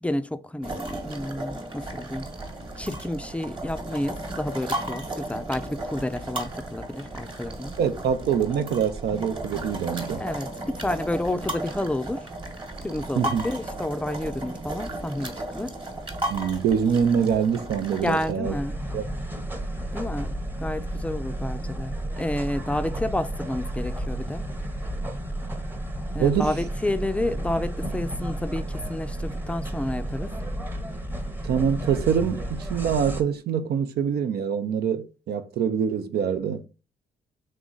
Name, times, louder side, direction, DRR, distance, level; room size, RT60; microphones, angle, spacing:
voice 1, 0.0-2.3 2.8-7.8 10.2-12.3 12.8-15.7 18.0-18.8 19.9-24.5 26.1-30.3, left 1 dB, 5° left, 0.4 m, -30 dB
sound 1, 0.6-18.3, right 1 dB, 30° right, 1.2 m, -35 dB
voice 2, 7.8-10.2 13.2-13.4 16.3-18.5 18.9-19.1 26.2-26.5 31.4-36.7, right 7 dB, 70° right, 0.5 m, -24 dB
sound 2, 18.4-33.2, right 1 dB, 10° right, 0.8 m, -32 dB
3.7 x 3.1 x 3.7 m
supercardioid pair, 60°, 17 cm